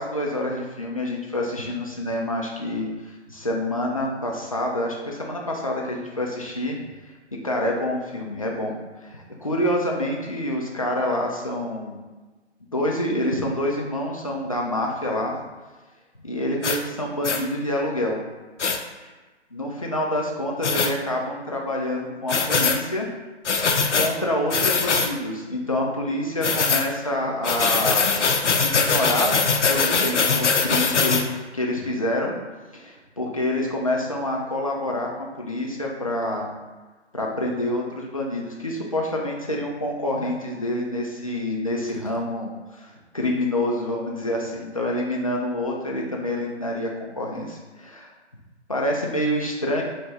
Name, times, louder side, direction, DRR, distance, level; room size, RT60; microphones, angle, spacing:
voice 1, 0.0-2.9 3.3-6.8 7.4-8.8 9.0-12.0 12.7-15.4 16.2-18.2 19.0-19.1 19.5-23.1 23.9-28.1 28.6-29.4 29.7-32.3 32.7-36.5 37.1-48.1 48.7-49.8, left 1 dB, 30° left, -2 dB, 0.4 m, -27 dB
sound 1, 16.6-16.8 17.2-17.4 18.6-18.8 20.6-20.9 22.3-22.8 23.5-24.1 24.5-25.1 26.4-26.9 27.4-31.2, left 5 dB, 80° left, 0.5 m, -21 dB
3.5 x 2.6 x 3.2 m, 1.3 s
figure-of-eight pair, 140°, 35 cm